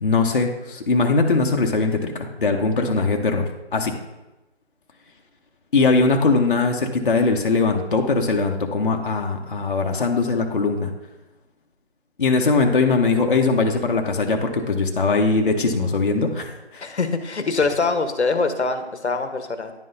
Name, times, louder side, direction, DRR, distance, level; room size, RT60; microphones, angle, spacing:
voice 1, 0.0-3.9 5.7-10.9 12.2-16.9, left 3 dB, 50° left, 2 dB, 0.8 m, -21 dB
voice 2, 2.8-3.1 16.8-19.7, left 4 dB, 80° left, 8 dB, 1.0 m, -24 dB
10.5 x 3.8 x 2.6 m, 1.0 s
figure-of-eight pair, 165°, 33 cm